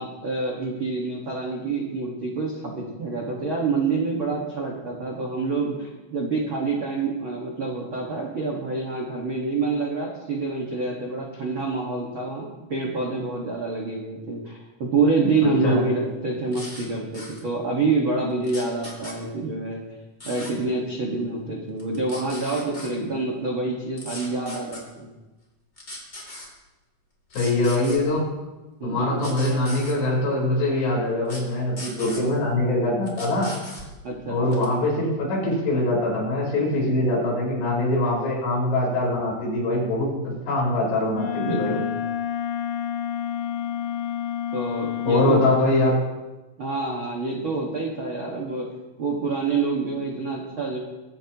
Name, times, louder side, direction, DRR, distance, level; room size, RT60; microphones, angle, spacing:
voice 1, 0.0-19.8 20.2-25.1 28.8-29.4 34.0-34.7 41.4-41.9 44.5-45.5 46.6-48.7 49.0-50.8, right 3 dB, 80° right, -2 dB, 1.1 m, -27 dB
voice 2, 15.4-15.8 27.3-28.3 28.8-33.5 34.3-41.8 45.1-46.0, left 2 dB, 65° left, -5 dB, 6.4 m, -23 dB
sound 1, 16.5-16.9 17.1-17.4 18.4-19.2 20.2-20.5 21.8-22.9 24.0-24.8 25.8-26.5 27.3-28.0 29.2-30.0 31.2-31.4 31.8-32.2 33.1-33.9 34.5-34.7, left 2 dB, 20° left, 2.3 m, -38 dB
Wind instrument woodwind instrument, 41.1-45.5, left 9 dB, 80° left, 2.3 m, -29 dB
23.5 x 10.0 x 3.0 m, 1.1 s
omnidirectional pair, 5.3 m